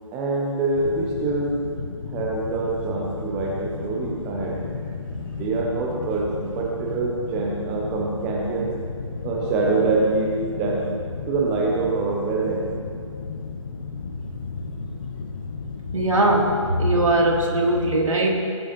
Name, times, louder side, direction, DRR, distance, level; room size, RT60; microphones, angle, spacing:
voice 1, 0.1-1.6 2.1-4.6 5.2-8.7 9.2-10.8 11.3-12.6, right 3 dB, 5° right, -1 dB, 0.3 m, -25 dB
sound 1, 0.7-17.4, left 4 dB, 45° left, 1.3 m, -34 dB
voice 2, 15.9-18.3, right 1 dB, 80° right, -1 dB, 2.8 m, -20 dB
17.5 x 14.0 x 2.9 m, 2.3 s
figure-of-eight pair, 150°, 17 cm